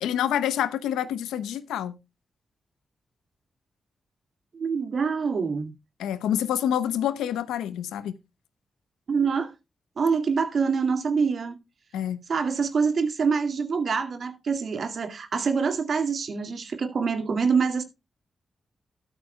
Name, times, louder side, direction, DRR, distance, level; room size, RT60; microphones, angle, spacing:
voice 1, 0.0-2.0 6.0-8.2 11.9-12.2, left 10 dB, 85° left, 0.8 m, -27 dB
voice 2, 4.5-5.7 9.1-9.5 10.0-11.6 12.3-17.8, right 5 dB, 65° right, 2.2 m, -25 dB
13.5 x 12.0 x 2.2 m
supercardioid pair, 40°, 0 cm